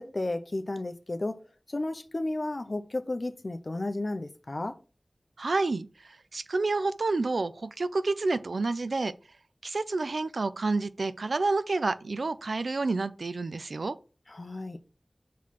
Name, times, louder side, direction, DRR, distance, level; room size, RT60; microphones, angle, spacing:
voice 1, 0.0-1.4 1.7-4.7 14.3-14.8, left 2 dB, 50° left, 0.6 m, -33 dB
voice 2, 5.4-9.1 9.6-14.0, right 3 dB, 90° right, 0.4 m, -29 dB
5.8 x 3.1 x 5.7 m
wide cardioid pair, 60°, 0 cm